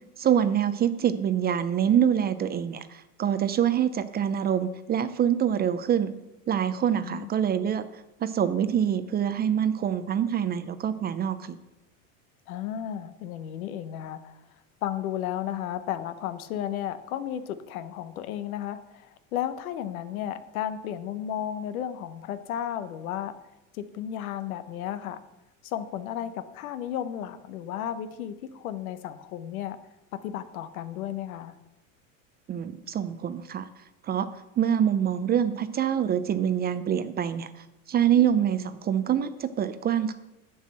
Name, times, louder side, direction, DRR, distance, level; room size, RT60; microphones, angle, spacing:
voice 1, 0.2-6.1 6.5-7.9 8.2-11.6 32.5-33.7 34.1-34.3 34.6-37.5 37.9-40.1, right 9 dB, 25° right, 12 dB, 0.5 m, -25 dB
voice 2, 7.0-7.3 12.5-14.4 14.8-23.4 23.7-25.2 25.6-29.8 30.1-31.5, left 10 dB, 85° left, 12 dB, 0.9 m, -33 dB
7.3 x 5.6 x 7.6 m, 0.95 s
supercardioid pair, 115°, 41 cm